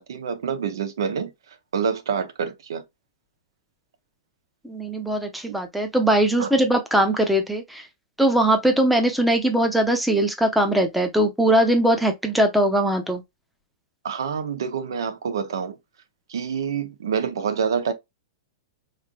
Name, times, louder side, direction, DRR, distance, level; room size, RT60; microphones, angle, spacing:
voice 1, 0.0-2.8 6.4-6.5 14.0-15.8 16.3-17.9, right 6 dB, 85° right, 0.9 m, -27 dB
voice 2, 4.6-7.8 8.2-13.2, right 1 dB, ahead, 0.7 m, -20 dB
3.8 x 3.3 x 2.2 m
hypercardioid pair, 150°, 2 cm